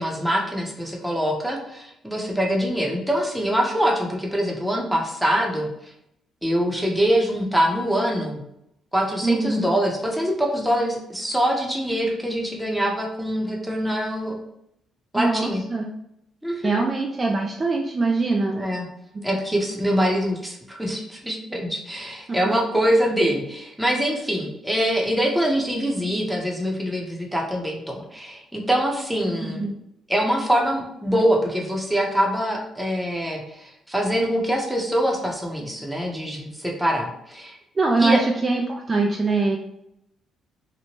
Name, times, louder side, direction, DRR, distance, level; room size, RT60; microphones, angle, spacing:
voice 1, 0.0-5.9 6.4-8.4 8.9-14.4 15.1-15.6 16.4-16.8 18.5-18.9 19.2-29.7 30.1-37.6 38.0-38.2, equal, ahead, -1 dB, 0.7 m, -24 dB
voice 2, 9.2-9.6 15.1-15.9 16.6-18.6 22.3-22.5 29.4-29.8 37.8-39.6, right 3 dB, 30° right, 1 dB, 0.3 m, -23 dB
2.8 x 2.1 x 2.8 m, 0.79 s
cardioid pair, 90°, 0 cm